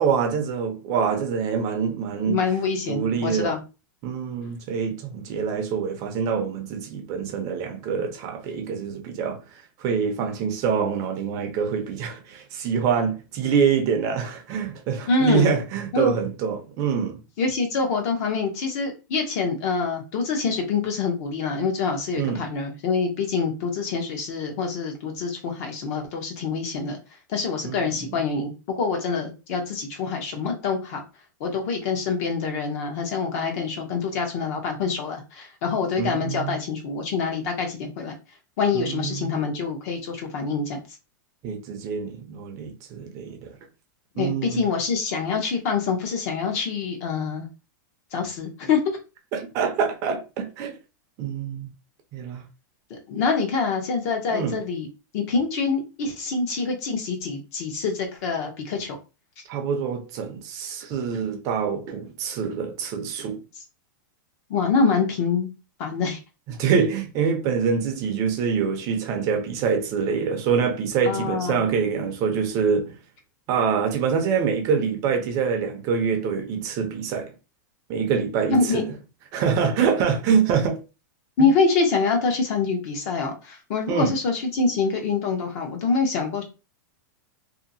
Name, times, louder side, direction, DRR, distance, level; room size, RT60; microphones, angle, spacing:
voice 1, 0.0-2.4 2.9-3.6 4.0-9.4 9.8-17.2 22.2-22.4 27.6-28.2 36.0-36.6 38.7-39.3 41.4-43.5 44.2-44.6 49.3-50.8 51.2-51.7 52.1-52.4 54.3-54.6 59.5-63.4 66.5-73.0 73.5-77.3 77.9-78.9 79.3-80.8 83.9-84.1, right 6 dB, 30° right, 0.5 m, -25 dB
voice 2, 2.3-3.6 15.1-15.5 15.9-16.1 17.4-27.0 27.3-31.0 31.4-38.1 38.6-40.8 44.1-47.5 48.1-48.8 52.9-54.9 55.1-59.0 64.5-65.5 65.8-66.2 71.1-71.6 78.5-78.9 81.4-86.4, left 4 dB, 50° left, 0.9 m, -25 dB
2.7 x 2.6 x 2.6 m
supercardioid pair, 160°, 11 cm